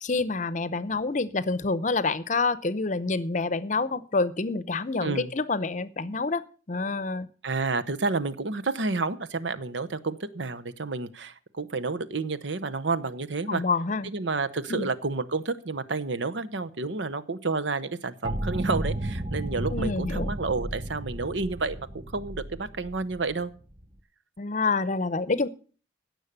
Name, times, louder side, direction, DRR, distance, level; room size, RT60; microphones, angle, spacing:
voice 1, 0.0-7.3 13.5-14.1 14.7-14.9 19.7-20.3 24.4-25.5, left 3 dB, 40° left, 17 dB, 0.7 m, -27 dB
voice 2, 7.4-13.6 14.0-21.9 22.1-23.5, right 3 dB, 75° right, 12 dB, 0.9 m, -30 dB
sound 1, 18.2-23.9, right 1 dB, 25° right, 0.8 m, -33 dB
16.5 x 6.4 x 6.7 m, 0.39 s
head